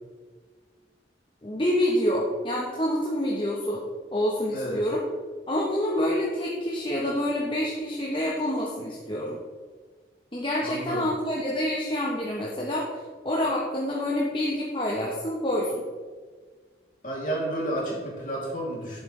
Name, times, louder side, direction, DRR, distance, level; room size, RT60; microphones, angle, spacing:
voice 1, 1.4-3.8 4.1-5.0 5.5-9.4 10.3-15.8, left 1 dB, 30° left, -3 dB, 1.0 m, -27 dB
voice 2, 10.6-11.0 17.0-19.0, right 1 dB, 45° left, -4 dB, 2.9 m, -31 dB
10.5 x 7.9 x 3.3 m, 1.5 s
head